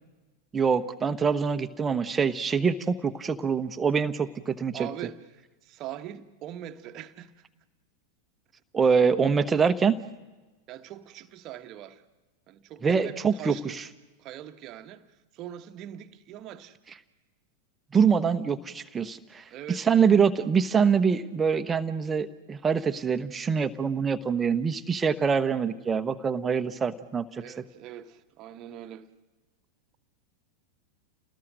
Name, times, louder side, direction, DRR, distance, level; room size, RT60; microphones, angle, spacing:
voice 1, 0.5-4.9 8.7-10.0 12.8-13.8 17.9-27.4, right 6 dB, 15° right, 1.1 m, -25 dB
voice 2, 4.7-7.3 10.7-12.0 12.5-13.9 14.2-16.8 19.5-19.9 27.4-29.1, right 11 dB, 35° right, 1.2 m, -42 dB
29.5 x 19.5 x 6.5 m
figure-of-eight pair, 90°, 0 cm